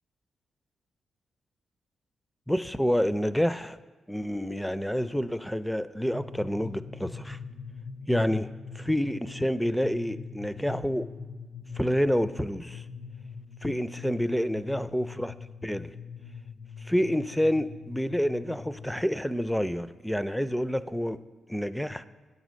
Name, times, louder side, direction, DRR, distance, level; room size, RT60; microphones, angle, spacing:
voice 1, 2.5-3.8 4.1-7.4 8.1-8.5 8.7-11.1 11.7-12.8 13.6-15.3 15.6-15.9 16.8-21.2 21.5-22.0, equal, 5° left, 14 dB, 0.4 m, -28 dB
sound 1, 6.1-19.0, left 5 dB, 55° left, 0.6 m, -43 dB
8.7 x 4.1 x 6.2 m, 1.4 s
supercardioid pair, 55°, 0 cm